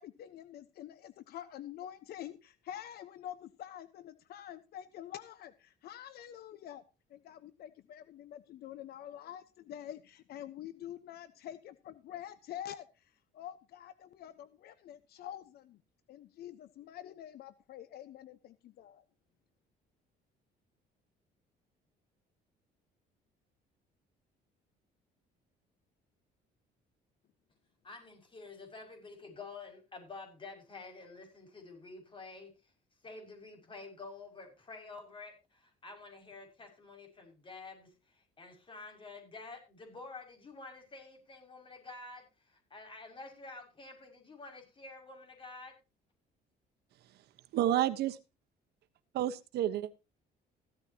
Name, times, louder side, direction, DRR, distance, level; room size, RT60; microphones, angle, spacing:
voice 1, 0.0-6.8 7.1-15.8 16.1-19.0, left 11 dB, 70° left, 13 dB, 1.1 m, -47 dB
voice 2, 27.8-32.7 33.0-45.7, left 3 dB, 30° left, 4 dB, 6.2 m, -49 dB
voice 3, 47.5-48.2 49.1-49.9, right 12 dB, 75° right, 11 dB, 1.2 m, -30 dB
15.5 x 12.5 x 2.9 m, 0.29 s
cardioid pair, 110°, 17 cm